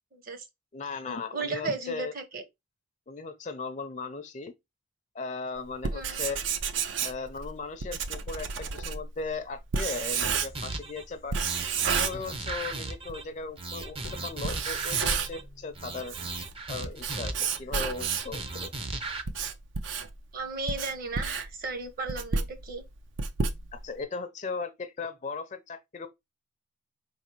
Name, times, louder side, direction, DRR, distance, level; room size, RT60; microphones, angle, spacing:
voice 1, 0.1-0.4 1.1-2.4 5.9-6.2 20.3-22.8, right 3 dB, 50° right, 1.0 m, -35 dB
voice 2, 0.7-2.1 3.1-4.5 5.1-6.4 7.0-11.4 11.9-14.0 14.2-16.1 16.7-18.7 23.7-26.1, left 4 dB, 40° left, 0.5 m, -37 dB
Writing, 5.7-10.8 11.3-12.8 13.1-13.2 13.8-13.9 14.3-15.5 15.9-18.4 19.0-24.0, right 6 dB, 75° right, 0.5 m, -31 dB
sound 1, 10.2-11.5 12.1-17.8, left 3 dB, 85° left, 0.6 m, -51 dB
sound 2, 10.5-11.0 11.4-13.2 13.6-15.4 15.7-17.6 17.9-19.2, right 3 dB, 30° right, 0.5 m, -36 dB
4.4 x 3.3 x 3.0 m
head